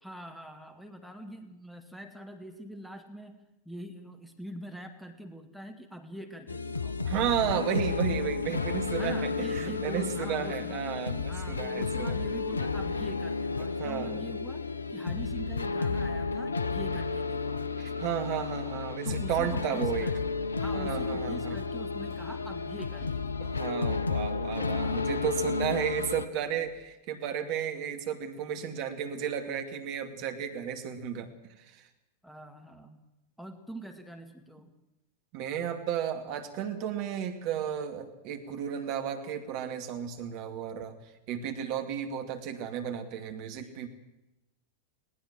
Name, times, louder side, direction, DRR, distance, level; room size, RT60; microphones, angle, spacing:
voice 1, 0.0-7.1 7.4-7.7 8.9-10.8 11.2-17.7 19.0-20.1 20.6-23.6 24.7-25.1 28.6-29.0 32.2-33.0 33.4-34.7 43.6-43.7, equal, ahead, 7 dB, 2.1 m, -44 dB
sound 1, 6.5-26.3, left 4 dB, 75° left, 0.7 m, -32 dB
voice 2, 7.0-12.2 13.8-14.1 17.8-20.1 20.7-21.6 23.5-31.3 35.3-40.9 41.3-43.9, right 9 dB, 45° right, 6 dB, 2.5 m, -33 dB
Wind, 20.0-26.8, left 2 dB, 40° left, 6.4 m, -54 dB
20.5 x 18.5 x 7.5 m, 0.95 s
figure-of-eight pair, 90°, 0 cm